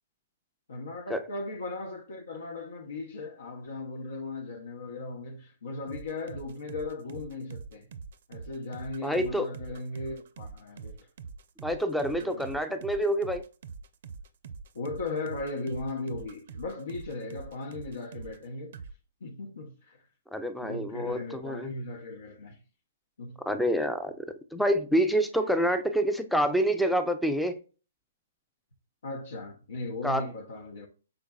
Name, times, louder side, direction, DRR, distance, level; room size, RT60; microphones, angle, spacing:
voice 1, 0.7-7.9 8.3-11.0 12.2-12.6 14.7-18.8 19.2-20.0 20.6-22.6 23.2-23.4 29.0-30.9, left 2 dB, 80° left, 0.8 m, -37 dB
sound 1, 5.9-18.5 18.7-18.9, right 5 dB, 55° right, 0.5 m, -44 dB
voice 2, 9.0-9.5 11.6-13.4 20.3-21.7 23.5-24.3 24.5-27.6 30.0-30.3, equal, ahead, 0.4 m, -27 dB
5.2 x 3.9 x 2.3 m
hypercardioid pair, 140°, 0 cm